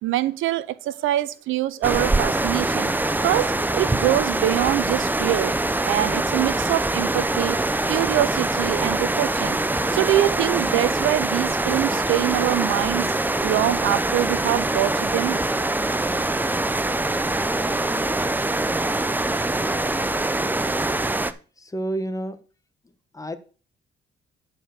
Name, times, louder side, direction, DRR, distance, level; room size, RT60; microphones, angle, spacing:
voice 1, 0.0-2.9 3.2-5.5 5.8-7.6 7.9-13.1 13.4-15.4, right 14 dB, 85° right, 17 dB, 0.6 m, -24 dB
sound 1, 1.8-21.3, right 2 dB, 10° right, 0.6 m, -24 dB
voice 2, 21.6-22.4 23.1-23.4, right 1 dB, 15° left, 10 dB, 1.1 m, -29 dB
10.0 x 4.5 x 6.6 m, 0.37 s
cardioid pair, 90°, 20 cm